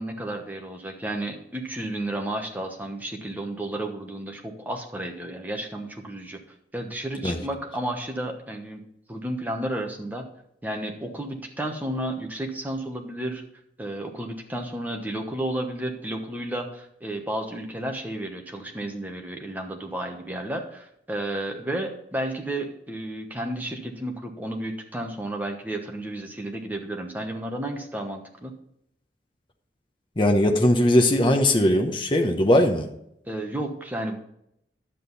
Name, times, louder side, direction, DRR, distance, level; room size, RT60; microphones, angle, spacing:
voice 1, 0.0-6.4 6.7-8.8 9.1-10.2 10.6-13.4 13.8-28.5 33.3-34.2, right 1 dB, 10° right, 2 dB, 1.1 m, -32 dB
voice 2, 30.2-32.9, left 1 dB, 25° left, 4 dB, 0.9 m, -19 dB
10.5 x 7.5 x 4.0 m, 0.76 s
head